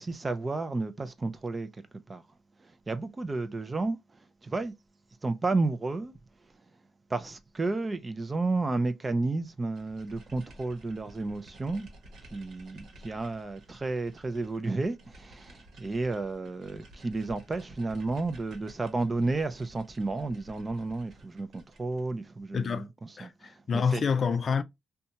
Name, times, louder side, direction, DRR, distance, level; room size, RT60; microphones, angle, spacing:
voice 1, 0.0-1.7 2.1-2.2 2.9-4.0 4.4-4.7 5.2-6.1 7.1-11.9 12.3-24.1, right 3 dB, 25° right, 0.4 m, -32 dB
sound 1, 9.8-22.1, right 1 dB, 70° right, 1.0 m, -53 dB
voice 2, 22.5-22.9 23.2-24.6, left 6 dB, 45° left, 0.3 m, -28 dB
2.6 x 2.2 x 2.8 m
cardioid pair, 90°, 0 cm